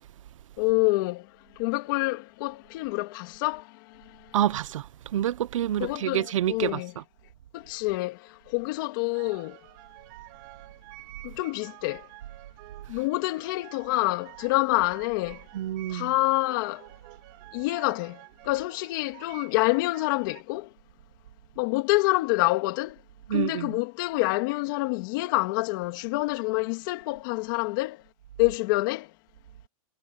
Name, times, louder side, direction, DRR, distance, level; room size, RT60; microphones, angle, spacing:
voice 1, 0.6-1.3 1.6-4.3 5.8-6.9 7.5-9.6 11.2-12.1 12.9-15.4 15.9-16.9 17.5-20.7 21.6-23.0 23.3-28.0 28.4-29.1, left 21 dB, 35° left, 2.8 m, -27 dB
voice 2, 4.3-6.8 15.5-16.1 23.3-23.8, right 11 dB, 60° right, 0.9 m, -27 dB
sound 1, 9.1-20.4, right 25 dB, 35° right, 4.2 m, -49 dB
supercardioid pair, 175°, 18 cm